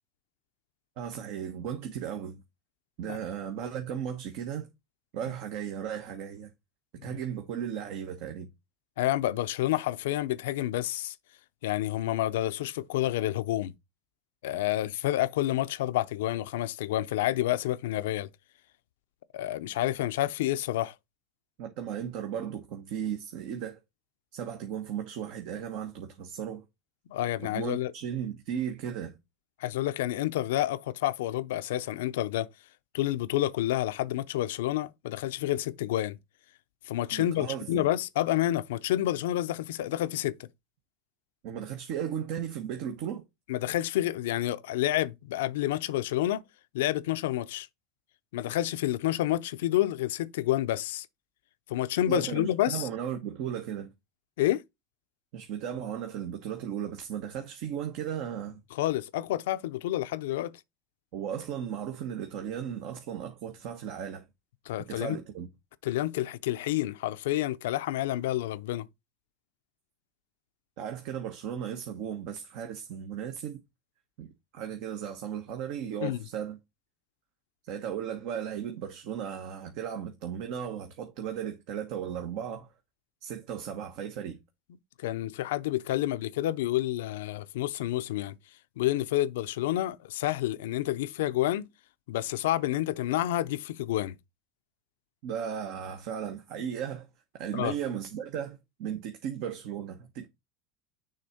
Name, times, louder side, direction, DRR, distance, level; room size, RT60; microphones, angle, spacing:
voice 1, 1.0-2.4 3.0-4.7 5.1-6.5 7.0-8.5 21.6-23.8 24.3-26.6 27.4-29.2 37.1-37.9 41.4-43.2 52.1-53.9 55.3-58.6 61.1-64.3 64.8-65.5 70.8-73.6 74.2-76.6 77.7-82.7 83.2-84.4 95.2-97.1 97.3-100.3, right 9 dB, 65° right, 1.1 m, -36 dB
voice 2, 9.0-11.1 11.6-13.7 14.4-18.3 19.3-20.9 27.1-27.9 29.6-32.5 32.9-36.2 36.9-40.4 43.5-46.4 46.7-47.7 48.3-51.1 51.7-52.9 54.4-54.6 58.7-60.5 64.7-65.2 65.8-68.9 76.0-76.2 85.0-88.4 88.8-91.7 92.1-94.2 97.5-97.7, left 14 dB, 90° left, 0.5 m, -29 dB
6.5 x 3.4 x 4.2 m
supercardioid pair, 125°, 0 cm